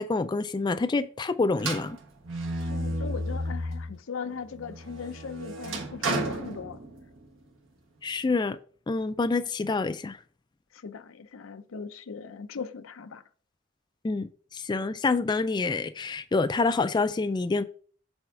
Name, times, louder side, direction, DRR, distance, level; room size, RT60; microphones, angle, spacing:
voice 1, 0.0-2.0 8.0-8.6 8.9-10.2 14.0-17.6, left 3 dB, 20° left, 0.3 m, -27 dB
sound 1, 1.6-4.0 4.4-7.3, right 1 dB, 75° right, 1.4 m, -33 dB
voice 2, 2.6-6.8 10.7-13.2, left 5 dB, 85° left, 0.5 m, -39 dB
7.8 x 3.5 x 4.7 m
head